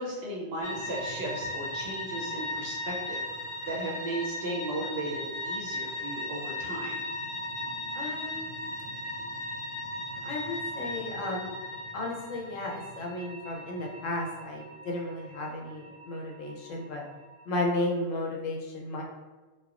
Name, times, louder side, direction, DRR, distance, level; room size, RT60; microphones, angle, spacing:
voice 1, 0.0-7.0, right 1 dB, 65° right, -3 dB, 0.7 m, -36 dB
sound 1, 0.6-17.6, left 1 dB, 30° left, 0.6 m, -37 dB
voice 2, 7.9-8.6 10.2-11.6 11.9-17.0 17.5-19.0, left 2 dB, 80° left, 0 dB, 0.9 m, -34 dB
3.2 x 2.0 x 2.3 m, 1.3 s
omnidirectional pair, 1.3 m